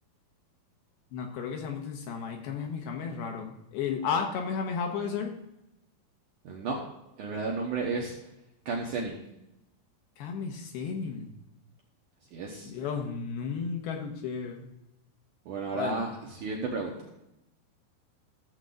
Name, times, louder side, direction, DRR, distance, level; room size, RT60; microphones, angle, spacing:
voice 1, 1.1-5.3 10.2-11.3 12.7-14.7 15.7-16.0, left 6 dB, 70° left, 3 dB, 2.6 m, -33 dB
voice 2, 6.4-6.8 7.2-8.1 8.7-9.2 12.3-12.7 15.5-17.0, right 3 dB, 65° right, -2 dB, 2.1 m, -32 dB
15.5 x 7.2 x 3.8 m, 0.89 s
omnidirectional pair, 5.1 m